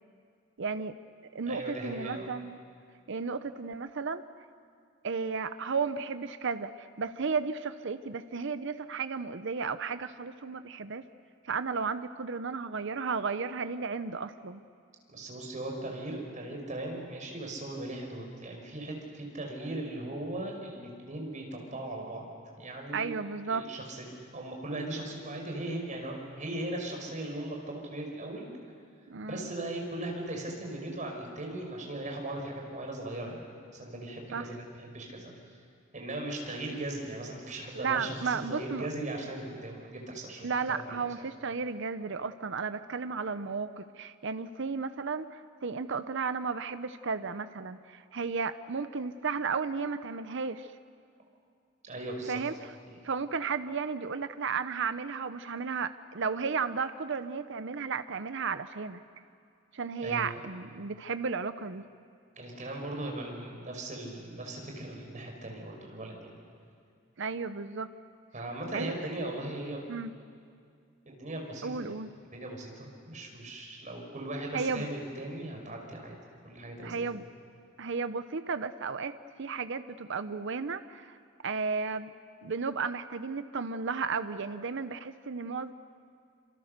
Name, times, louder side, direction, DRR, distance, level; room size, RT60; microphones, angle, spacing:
voice 1, 0.6-0.9 1.3-2.6 3.1-4.2 5.0-11.0 11.4-14.6 22.9-23.7 29.1-29.5 34.3-34.5 37.8-38.9 40.4-50.7 52.3-52.5 53.0-59.0 59.7-61.8 67.2-67.9 68.7-68.9 69.9-70.1 71.6-72.1 74.5-74.9 76.8-77.2 77.8-81.2 81.4-82.1 82.4-85.7, right 5 dB, 65° right, 11 dB, 0.7 m, -34 dB
voice 2, 1.5-2.3 15.1-22.2 22.6-23.1 23.5-28.5 29.2-35.3 35.9-41.3 51.8-52.4 52.9-53.0 60.0-60.5 62.4-66.3 68.3-69.9 71.1-72.0 72.3-76.1 76.4-77.0, right 1 dB, 40° right, 1 dB, 5.4 m, -38 dB
27.5 x 26.5 x 6.7 m, 2.3 s
head